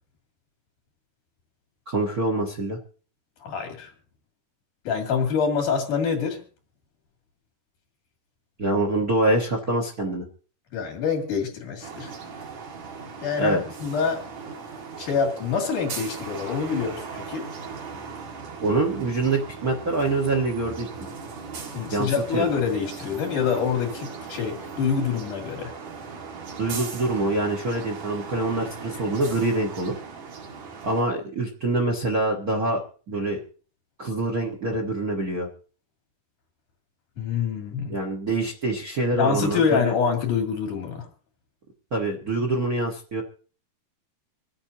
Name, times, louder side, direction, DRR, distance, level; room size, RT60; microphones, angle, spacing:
voice 1, 1.9-2.8 8.6-10.2 13.4-13.6 18.6-20.9 21.9-22.5 26.6-29.9 30.8-33.4 34.0-35.5 37.9-39.9 41.9-43.2, right 2 dB, 40° right, 2 dB, 1.3 m, -25 dB
voice 2, 3.4-3.9 4.9-6.4 10.7-12.1 13.2-14.2 15.0-17.5 21.7-25.7 37.2-38.0 39.2-41.1, left 6 dB, 75° left, 3 dB, 4.0 m, -26 dB
sound 1, 11.8-31.0, right 5 dB, 60° right, 3.0 m, -38 dB
26.0 x 8.8 x 2.8 m, 0.39 s
omnidirectional pair, 3.6 m